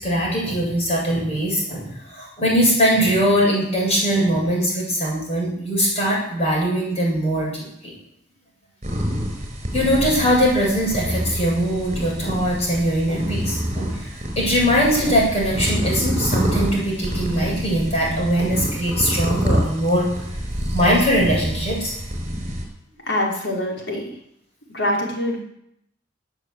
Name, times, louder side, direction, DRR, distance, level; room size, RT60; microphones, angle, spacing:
voice 1, 0.0-7.9 9.7-20.1 20.7-21.9, equal, 35° left, -3 dB, 7.9 m, -21 dB
sound 1, 8.8-22.6, equal, 40° right, 4.7 m, -27 dB
voice 2, 23.0-24.2 24.7-25.4, left 1 dB, 75° left, -2 dB, 5.0 m, -24 dB
17.5 x 9.1 x 8.2 m, 0.77 s
head